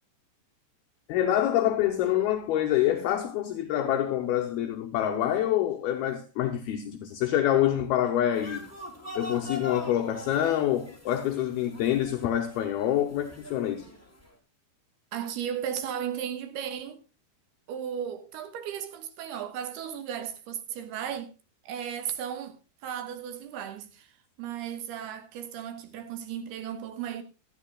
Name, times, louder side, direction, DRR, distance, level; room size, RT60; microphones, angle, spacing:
voice 1, 1.1-8.6 9.2-13.9, left 11 dB, 75° left, 2.6 m, -26 dB
sound 1, 8.3-14.3, left 2 dB, 5° left, 2.0 m, -42 dB
voice 2, 15.1-17.0 17.7-21.3 21.6-22.6 22.8-24.1 24.4-27.2, right 9 dB, 70° right, 3.1 m, -35 dB
17.0 x 12.5 x 2.3 m
omnidirectional pair, 5.0 m